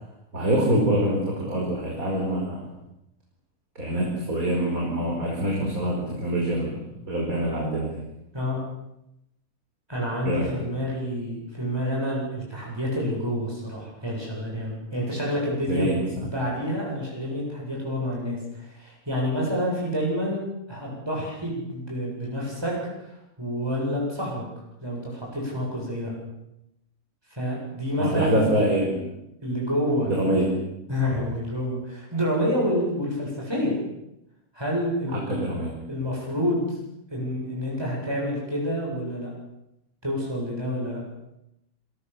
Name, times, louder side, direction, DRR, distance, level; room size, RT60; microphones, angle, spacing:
voice 1, 0.3-2.7 3.8-6.8 7.1-8.0 10.2-10.6 15.7-16.3 28.0-29.1 30.0-30.5 31.0-31.2 35.1-35.8, right 1 dB, 70° right, -1 dB, 5.3 m, -25 dB
voice 2, 9.9-15.9 16.2-20.4 20.7-24.4 24.8-26.1 27.4-28.6 29.4-30.1 30.9-33.8 34.5-35.5 35.9-36.6 37.1-39.3 40.0-41.0, equal, 15° right, -3 dB, 8.0 m, -28 dB
27.5 x 23.0 x 7.2 m, 0.84 s
omnidirectional pair, 1.5 m